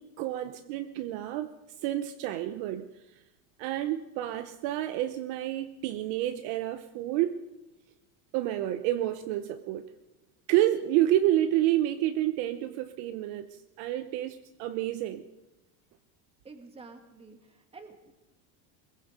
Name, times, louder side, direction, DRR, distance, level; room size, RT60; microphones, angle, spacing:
voice 1, 0.0-1.5 1.8-2.9 3.6-7.4 8.3-9.9 10.5-15.2, right 13 dB, 45° right, 9 dB, 1.0 m, -29 dB
voice 2, 16.4-18.1, right 3 dB, 10° right, 5 dB, 2.2 m, -49 dB
23.5 x 22.0 x 5.2 m, 1.0 s
cardioid pair, 170°, 49 cm